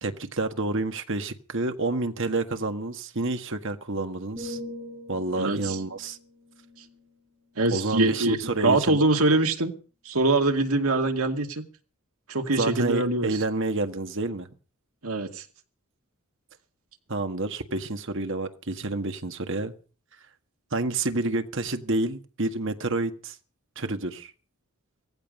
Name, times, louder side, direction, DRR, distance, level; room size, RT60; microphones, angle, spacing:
voice 1, 0.0-4.6 5.1-6.2 7.7-9.0 12.6-14.5 17.1-19.7 20.7-23.4 23.8-24.3, right 2 dB, 55° right, 7 dB, 1.7 m, -29 dB
sound 1, 4.4-8.3 8.8-9.0, left 1 dB, 10° right, 7.3 m, -43 dB
voice 2, 5.4-5.8 7.6-9.7 10.0-11.6 12.3-13.3 15.0-15.4, right 2 dB, 75° right, 5 dB, 2.3 m, -24 dB
17.5 x 15.0 x 5.4 m, 0.39 s
head